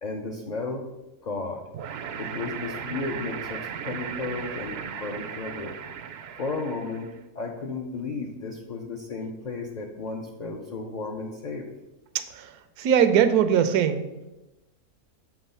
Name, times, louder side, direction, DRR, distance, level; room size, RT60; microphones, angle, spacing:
voice 1, 0.0-0.8 1.2-1.7 2.2-5.8 6.4-11.7, left 3 dB, 55° left, 1 dB, 0.4 m, -34 dB
sound 1, 1.7-7.2, right 8 dB, 70° right, 0.6 m, -36 dB
voice 2, 12.8-14.0, right 8 dB, 90° right, 10 dB, 1.1 m, -20 dB
7.0 x 3.9 x 5.5 m, 1.0 s
omnidirectional pair, 1.6 m